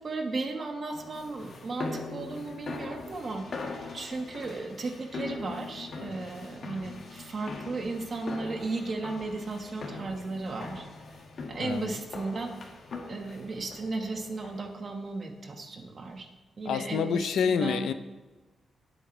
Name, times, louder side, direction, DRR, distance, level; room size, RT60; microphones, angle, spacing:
voice 1, 0.0-3.7 3.9-10.9 11.5-12.6 13.1-16.3 16.6-17.9, right 3 dB, 40° right, 4 dB, 1.6 m, -35 dB
sound 1, 0.9-14.8, left 3 dB, 50° left, 2.0 m, -41 dB
voice 2, 11.6-12.0 16.6-17.9, left 7 dB, 85° left, 11 dB, 0.7 m, -28 dB
19.0 x 8.6 x 3.3 m, 1.2 s
wide cardioid pair, 140°, 0 cm